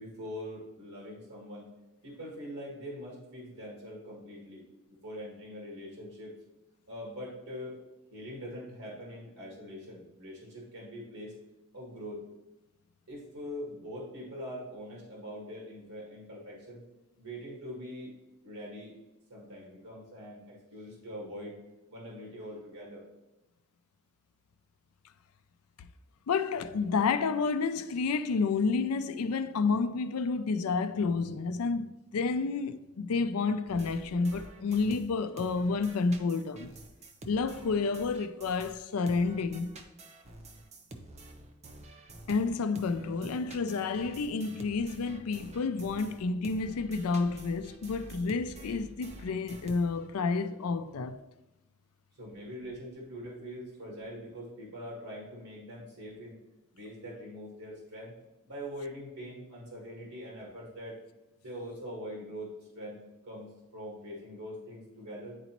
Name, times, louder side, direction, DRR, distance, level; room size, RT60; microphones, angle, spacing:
voice 1, 0.0-1.7 2.0-4.6 5.0-6.3 6.9-7.8 8.1-11.3 11.7-12.2 13.1-16.8 17.2-18.1 18.4-19.0 19.3-21.6 21.9-23.0 52.2-56.4 56.7-58.1 58.5-61.0 61.4-63.0 63.2-65.4, equal, 90° right, 1.8 m, -43 dB
voice 2, 26.3-36.7 37.3-39.7 42.3-51.2, left 4 dB, 80° left, 0.4 m, -30 dB
sound 1, 33.7-38.8 39.1-50.2, right 2 dB, 30° right, 0.6 m, -49 dB
9.9 x 4.0 x 3.0 m
head